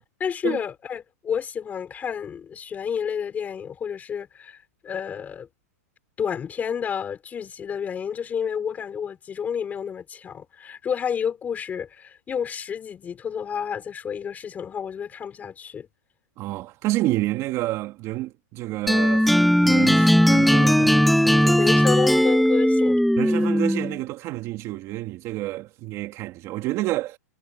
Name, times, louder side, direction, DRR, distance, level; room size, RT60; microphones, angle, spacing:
voice 1, 0.2-5.5 6.2-15.9 21.6-23.1, left 7 dB, 15° left, 4.9 m, -30 dB
voice 2, 16.4-19.3 19.6-21.6 23.2-27.2, right 17 dB, 35° right, 2.9 m, -29 dB
sound 1, 18.9-24.0, equal, ahead, 0.4 m, -18 dB
supercardioid pair, 150°, 9 cm